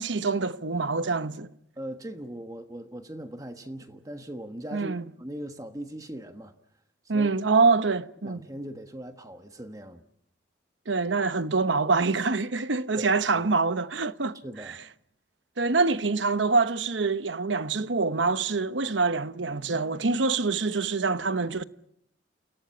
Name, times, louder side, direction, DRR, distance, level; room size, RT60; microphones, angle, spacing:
voice 1, 0.0-1.5 4.7-5.0 7.1-8.5 10.9-14.4 14.7-14.8 15.6-21.6, right 4 dB, 85° right, 1.0 m, -25 dB
voice 2, 1.8-6.5 7.0-7.3 8.2-10.0 12.9-13.4 14.4-14.8, right 1 dB, 20° right, 1.3 m, -40 dB
29.0 x 17.0 x 8.4 m
head